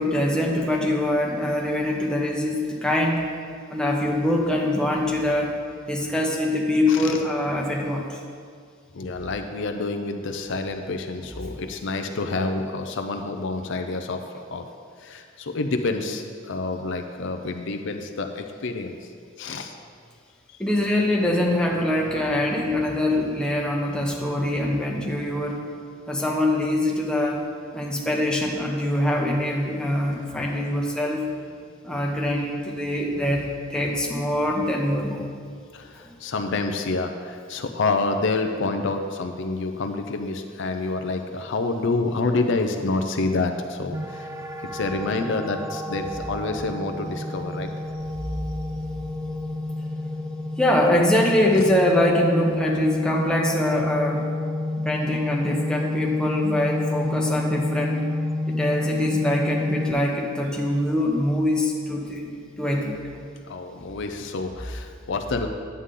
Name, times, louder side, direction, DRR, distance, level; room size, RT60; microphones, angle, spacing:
voice 1, 0.0-3.3 3.7-5.5 5.9-8.2 11.2-11.3 20.6-25.6 26.1-27.4 27.7-31.2 31.8-33.4 33.7-35.2 36.0-36.1 50.6-54.2 54.8-58.0 58.5-63.0, left 1 dB, 5° left, -2 dB, 1.0 m, -23 dB
voice 2, 8.9-14.2 14.5-14.7 15.0-18.9 19.4-19.7 35.7-44.3 44.7-47.7 51.5-51.6 63.5-65.5, left 3 dB, 65° left, 6 dB, 0.6 m, -28 dB
sound 1, 43.9-59.9, left 2 dB, 15° right, 0.3 m, -29 dB
9.7 x 8.0 x 3.8 m, 2.1 s
head